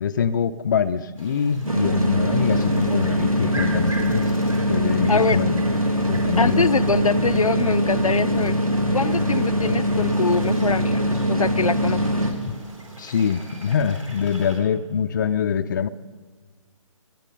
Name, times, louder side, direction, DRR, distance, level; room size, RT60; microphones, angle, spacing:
voice 1, 0.0-4.3 4.7-5.7 6.1-6.7 12.5-12.6 13.0-15.9, left 7 dB, 35° left, 11 dB, 0.5 m, -24 dB
sound 1, 1.2-14.6, right 2 dB, 70° right, 4.0 m, -42 dB
sound 2, 1.7-12.3, equal, 90° right, 2.0 m, -22 dB
voice 2, 5.1-5.4 6.4-8.6 8.9-11.0 11.3-12.0, left 4 dB, 80° left, 13 dB, 0.5 m, -23 dB
19.5 x 12.0 x 5.3 m, 1.5 s
figure-of-eight pair, 140°, 18 cm